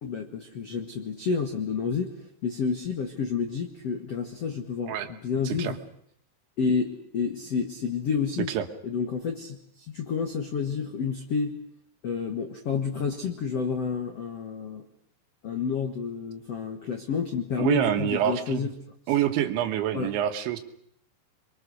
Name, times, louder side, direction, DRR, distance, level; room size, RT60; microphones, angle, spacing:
voice 1, 0.0-2.1 2.4-5.8 6.6-8.5 8.8-11.5 12.0-14.8 15.4-18.7 19.9-20.1, left 5 dB, 75° left, 5 dB, 1.4 m, -29 dB
voice 2, 5.4-5.8 8.5-8.7 17.6-18.7 19.1-20.6, right 11 dB, 75° right, 7 dB, 3.6 m, -26 dB
29.0 x 23.0 x 6.5 m, 0.68 s
omnidirectional pair, 5.6 m